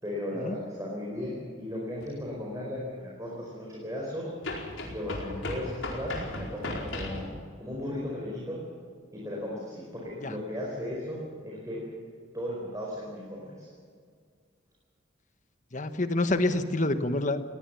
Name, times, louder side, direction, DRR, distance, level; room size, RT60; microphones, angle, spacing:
voice 1, 0.0-4.3 4.8-8.6 9.1-11.2 11.4-11.8 12.3-13.7, left 1 dB, 15° right, -4 dB, 4.8 m, -36 dB
sound 1, 2.0-2.1 4.4-7.3, left 2 dB, 80° left, 4.7 m, -36 dB
voice 2, 15.7-17.4, left 2 dB, 40° left, 9 dB, 1.3 m, -27 dB
20.5 x 18.5 x 7.1 m, 2.1 s
head